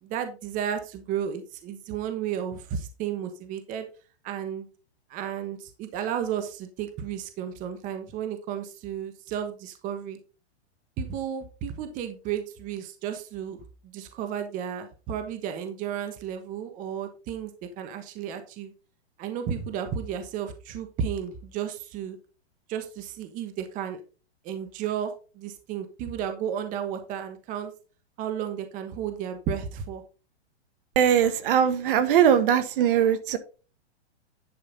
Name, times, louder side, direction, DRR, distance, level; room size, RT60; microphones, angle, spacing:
voice 1, 0.0-3.9 4.2-4.7 5.1-10.2 11.0-17.5 17.8-18.7 19.2-22.2 22.7-24.0 24.4-27.7 28.2-30.0, right 8 dB, 25° right, 8 dB, 1.2 m, -33 dB
voice 2, 30.9-33.4, right 9 dB, 50° right, 12 dB, 1.4 m, -21 dB
10.5 x 5.5 x 4.0 m, 0.34 s
hypercardioid pair, 155°, 33 cm